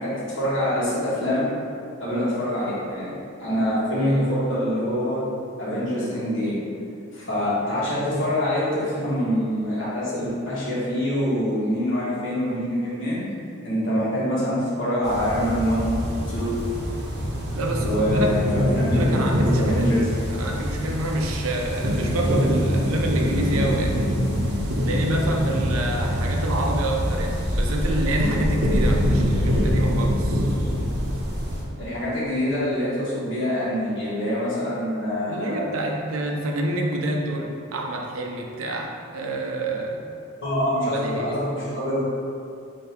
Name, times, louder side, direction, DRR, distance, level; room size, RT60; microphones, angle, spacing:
voice 1, 0.0-1.5 2.0-5.2 5.6-6.6 7.1-13.2 13.6-15.9 16.3-16.5 17.7-20.1 31.8-35.7 40.4-42.0, equal, 60° left, -9 dB, 1.2 m, -25 dB
sound 1, 15.0-31.6, equal, 50° right, 0.8 m, -24 dB
voice 2, 17.5-18.4 18.8-19.9 20.3-24.0 24.8-30.5 35.3-40.0 40.8-41.4, right 1 dB, 80° right, 1 dB, 0.5 m, -28 dB
3.6 x 2.7 x 4.3 m, 2.5 s
head